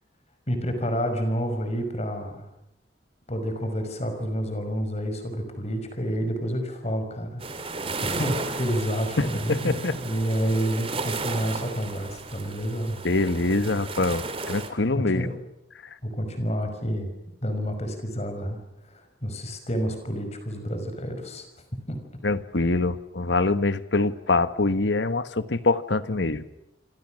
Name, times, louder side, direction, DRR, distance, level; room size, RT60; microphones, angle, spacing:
voice 1, 0.5-2.4 3.3-13.0 14.9-15.3 16.0-17.1 17.4-18.6 18.9-21.5 21.9-22.0, equal, 35° left, 7 dB, 5.7 m, -29 dB
sound 1, 7.4-14.7, right 3 dB, 30° right, 2.8 m, -34 dB
voice 2, 9.2-9.9 13.0-15.3 22.2-26.5, left 3 dB, 70° left, 13 dB, 1.3 m, -24 dB
27.0 x 26.5 x 6.4 m, 0.88 s
head